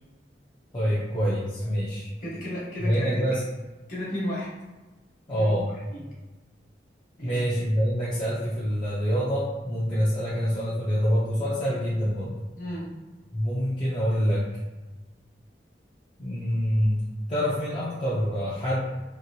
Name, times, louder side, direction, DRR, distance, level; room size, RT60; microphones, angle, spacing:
voice 1, 0.7-2.1 2.8-3.4 5.3-5.7 7.2-12.3 13.3-14.5 16.2-17.0 17.3-18.8, equal, 30° left, -9 dB, 0.6 m, -26 dB
voice 2, 2.2-3.3 3.9-4.5 5.4-6.1 7.2-7.4 12.6-13.0, equal, 50° left, -6 dB, 1.2 m, -34 dB
3.0 x 2.9 x 2.7 m, 1.2 s
head